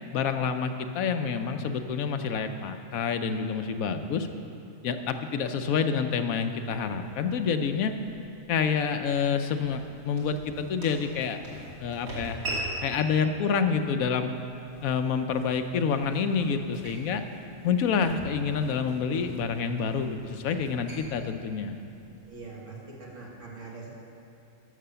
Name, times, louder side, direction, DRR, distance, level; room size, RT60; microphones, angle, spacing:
voice 1, 0.1-4.3 4.8-7.9 8.5-11.4 11.8-12.4 12.8-14.3 14.8-17.2 17.6-21.8, left 6 dB, 90° left, 8 dB, 1.1 m, -28 dB
sound 1, 6.4-22.5, right 1 dB, 90° right, 3.0 m, -43 dB
voice 2, 22.3-23.9, right 3 dB, 65° right, -4 dB, 2.3 m, -43 dB
12.5 x 6.8 x 6.9 m, 2.8 s
omnidirectional pair, 1.4 m